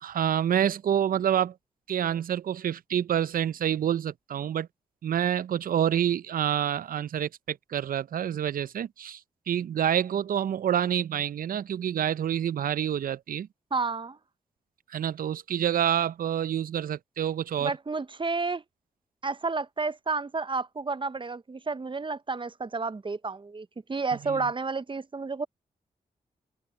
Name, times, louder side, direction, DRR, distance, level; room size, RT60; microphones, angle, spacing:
voice 1, 0.0-1.5 1.9-4.7 5.0-9.2 9.5-13.5 14.9-17.7 24.3-24.4, right 9 dB, 70° right, 0.6 m, -27 dB
voice 2, 13.7-14.2 17.6-18.6 19.2-25.5, right 4 dB, 30° right, 0.8 m, -31 dB
supercardioid pair, 40°, 16 cm